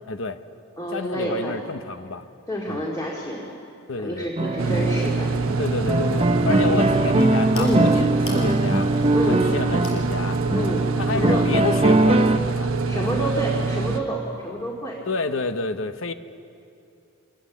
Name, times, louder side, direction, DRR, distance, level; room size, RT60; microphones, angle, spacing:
voice 1, 0.1-0.4 0.9-2.3 2.7-2.9 3.9-4.3 5.6-8.9 9.3-10.4 11.0-12.7 15.1-16.1, left 3 dB, 65° left, 10 dB, 1.0 m, -29 dB
voice 2, 0.8-1.7 2.5-3.5 4.0-5.3 6.4-7.0 7.6-7.9 9.1-9.4 10.5-11.5 12.9-15.0, right 1 dB, 15° left, -2 dB, 2.3 m, -28 dB
sound 1, 4.4-12.4, right 2 dB, 25° right, 0.7 m, -22 dB
sound 2, 4.6-14.0, right 3 dB, 75° right, 1.1 m, -25 dB
sound 3, 6.4-11.7, left 2 dB, 85° left, 5.8 m, -43 dB
26.0 x 19.0 x 7.3 m, 2.6 s
head